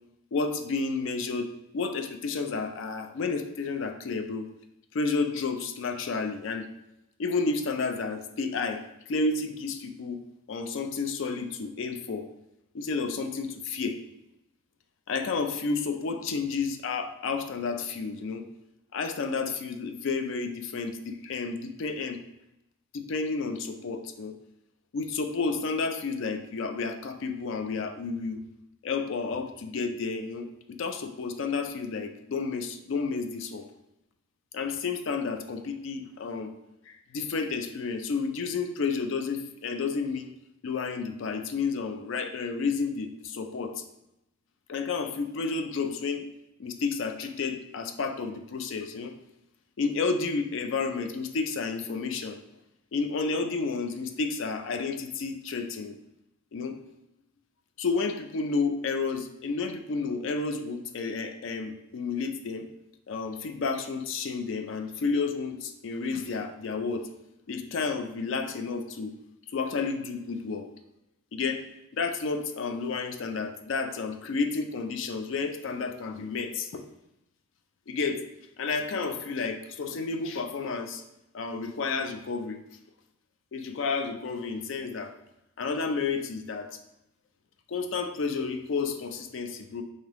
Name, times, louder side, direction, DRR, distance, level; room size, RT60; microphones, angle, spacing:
voice 1, 0.3-1.5 1.7-4.5 4.9-6.7 7.2-10.2 10.5-12.3 12.7-14.0 15.1-18.4 18.9-22.2 22.9-24.4 24.9-28.4 28.8-33.7 34.5-36.5 36.9-40.3 40.6-43.8 44.7-46.2 46.6-49.1 49.8-52.4 52.9-56.0 56.5-56.8 57.8-62.7 63.1-67.1 67.5-69.1 69.5-70.7 71.3-71.7 71.9-76.9 77.9-78.2 78.6-81.0 81.3-82.6 83.5-85.1 85.6-86.7 87.7-89.8, left 4 dB, 60° left, 7 dB, 0.4 m, -31 dB
3.5 x 2.7 x 3.4 m, 0.87 s
head